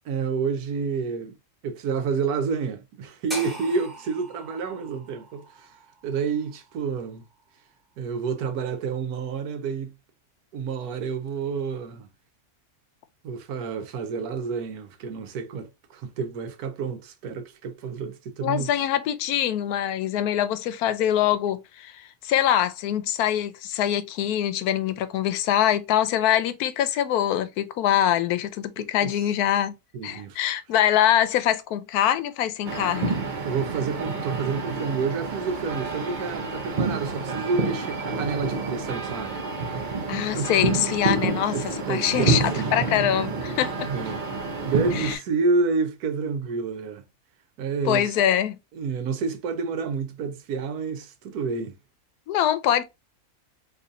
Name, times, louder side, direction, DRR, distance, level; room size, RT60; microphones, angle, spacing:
voice 1, 0.1-1.4 1.6-7.2 8.0-9.9 10.5-12.1 13.2-18.7 28.8-29.2 29.9-30.4 33.4-39.4 40.3-40.5 41.5-42.7 43.8-44.2 44.6-47.0 47.6-48.2 48.7-51.8, right 5 dB, 85° right, 1.2 m, -29 dB
sound 1, 3.3-7.4, right 1 dB, ahead, 1.0 m, -41 dB
voice 2, 18.4-29.8 30.0-33.2 40.1-41.6 41.9-43.9 45.0-45.2 47.9-48.6 52.3-52.8, left 11 dB, 85° left, 1.1 m, -24 dB
sound 2, 32.6-45.1, right 4 dB, 50° right, 0.6 m, -28 dB
3.9 x 3.1 x 2.4 m
omnidirectional pair, 1.6 m